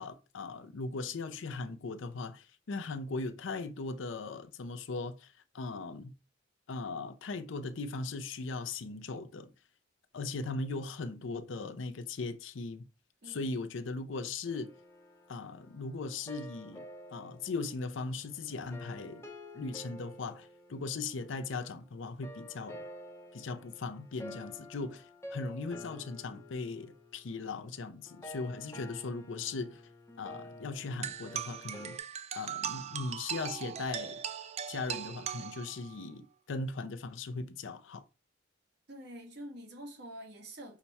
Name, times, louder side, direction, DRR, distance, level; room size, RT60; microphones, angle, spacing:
voice 1, 0.0-6.1 6.7-9.5 10.1-12.8 13.3-14.7 15.3-16.9 17.1-19.3 19.5-22.8 23.3-29.8 30.2-32.0 32.3-34.2 34.7-38.0, left 3 dB, 80° left, 0.5 m, -38 dB
voice 2, 13.2-13.5 38.9-40.8, equal, 60° right, 1.5 m, -46 dB
sound 1, 14.5-21.6 22.2-32.0, left 1 dB, 15° left, 0.7 m, -50 dB
sound 2, 31.0-36.0, right 8 dB, 35° right, 0.3 m, -39 dB
5.8 x 2.2 x 4.1 m
head